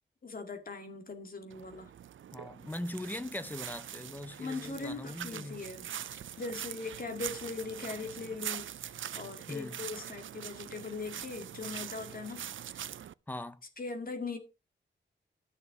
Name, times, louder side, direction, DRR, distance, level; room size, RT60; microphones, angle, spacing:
voice 1, 0.2-1.9 4.4-5.8 6.1-12.4 12.7-12.9 13.8-14.4, left 3 dB, 45° left, 2.1 m, -40 dB
sound 1, 1.5-13.1, right 10 dB, 80° right, 0.4 m, -43 dB
voice 2, 2.3-5.6 9.5-9.8 13.3-13.6, left 1 dB, 10° left, 0.7 m, -40 dB
12.5 x 6.9 x 4.9 m
wide cardioid pair, 180°, 20 cm